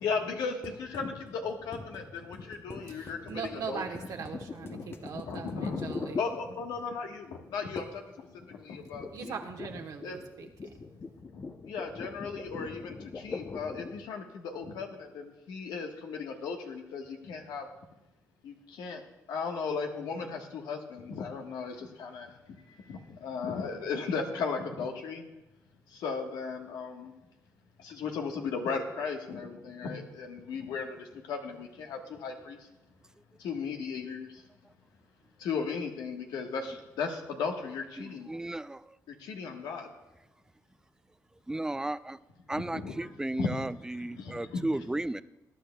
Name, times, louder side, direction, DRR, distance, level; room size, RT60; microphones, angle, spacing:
voice 1, 0.0-3.8 4.7-9.4 10.0-10.2 11.3-17.7 18.4-19.0 19.3-25.2 25.9-27.1 27.8-32.7 33.4-34.4 35.4-38.3 39.1-39.9 42.5-43.1 43.4-43.6 44.0-44.7, left 5 dB, 85° left, 2 dB, 1.3 m, -36 dB
sound 1, 0.6-7.0 7.8-8.1 8.4-14.1, left 4 dB, 35° left, 0.7 m, -42 dB
voice 2, 2.9-6.2 9.1-10.7, right 6 dB, 65° right, 3 dB, 1.2 m, -40 dB
voice 3, 38.0-39.0 41.5-42.2 42.5-45.2, right 2 dB, 10° right, 15 dB, 0.3 m, -34 dB
20.5 x 10.5 x 2.2 m, 0.97 s
cardioid pair, 100°, 7 cm